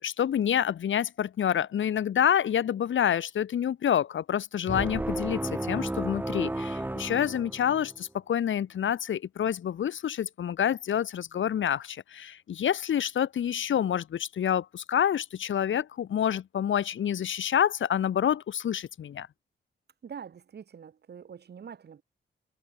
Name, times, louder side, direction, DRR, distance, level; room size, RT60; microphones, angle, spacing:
voice 1, 0.0-19.3, left 9 dB, 85° left, 2.3 m, -28 dB
sound 1, 4.7-8.0, right 1 dB, 10° right, 1.8 m, -33 dB
voice 2, 20.0-22.0, right 7 dB, 60° right, 3.7 m, -44 dB
wide cardioid pair, 150°, 19 cm